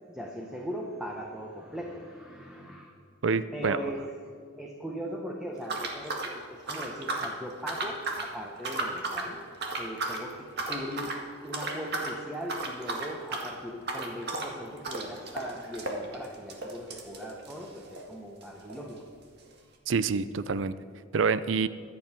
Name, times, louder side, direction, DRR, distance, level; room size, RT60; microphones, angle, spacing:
voice 1, 0.1-2.9 3.5-9.4 9.8-19.1, equal, 5° right, -1 dB, 1.2 m, -39 dB
voice 2, 3.2-3.8 19.9-20.7 21.1-21.7, right 5 dB, 75° right, 15 dB, 0.5 m, -26 dB
sound 1, 5.6-7.4 7.7-8.3 8.6-9.3 9.6-10.2 10.6-11.2 11.5-12.2 12.4-18.1 18.4-18.5 18.7-18.8 19.5-19.6, right 2 dB, 60° right, 1.8 m, -34 dB
23.5 x 8.3 x 4.5 m, 2.1 s
head